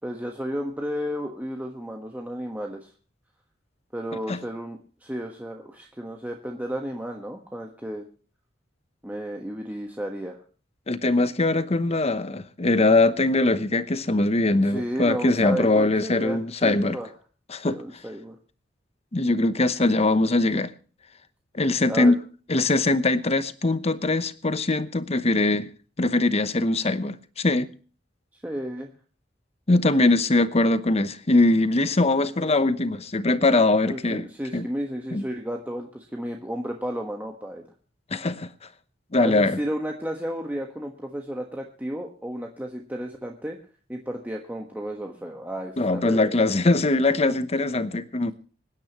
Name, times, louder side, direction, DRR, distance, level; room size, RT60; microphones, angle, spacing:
voice 1, 0.0-2.9 3.9-8.1 9.0-10.4 14.6-17.1 17.6-18.4 21.9-22.1 28.3-28.9 33.8-37.6 39.2-43.6 43.9-46.4, equal, 10° right, 1.4 m, -33 dB
voice 2, 10.9-17.0 17.5-17.8 19.1-20.7 21.5-22.2 22.5-25.7 26.0-27.7 29.7-34.3 34.5-34.7 35.1-35.2 38.1-38.5 39.1-39.6 45.8-48.3, left 2 dB, 35° left, 0.9 m, -22 dB
25.5 x 10.0 x 3.0 m
head